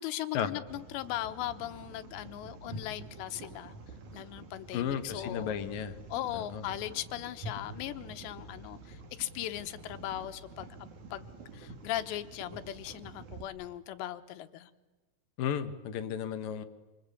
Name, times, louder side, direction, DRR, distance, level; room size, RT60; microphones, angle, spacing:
voice 1, 0.0-3.7 4.1-5.6 6.1-14.7, left 13 dB, 80° left, 10 dB, 3.2 m, -38 dB
sound 1, 0.7-13.4, right 2 dB, 50° right, 3.2 m, -47 dB
voice 2, 4.7-6.0 6.3-6.6 15.4-16.6, left 8 dB, 65° left, 9 dB, 2.5 m, -34 dB
27.5 x 25.0 x 8.4 m, 1.2 s
omnidirectional pair, 5.1 m